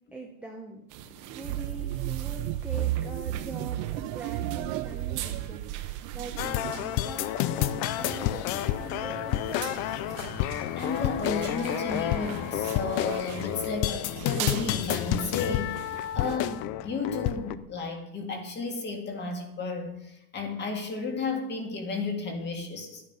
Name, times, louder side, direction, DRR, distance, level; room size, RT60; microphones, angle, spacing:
voice 1, 0.1-0.9 1.3-10.0, right 3 dB, 5° right, -1 dB, 0.7 m, -43 dB
sound 1, 0.9-16.4, right 9 dB, 45° right, 1.0 m, -42 dB
sound 2, 1.5-6.8, right 14 dB, 70° right, 0.7 m, -33 dB
sound 3, 6.4-17.6, left 13 dB, 45° left, 0.5 m, -30 dB
voice 2, 10.8-15.9 16.2-23.0, left 3 dB, 25° left, 4 dB, 1.8 m, -33 dB
12.0 x 9.7 x 5.4 m, 0.84 s
cardioid pair, 170°, 44 cm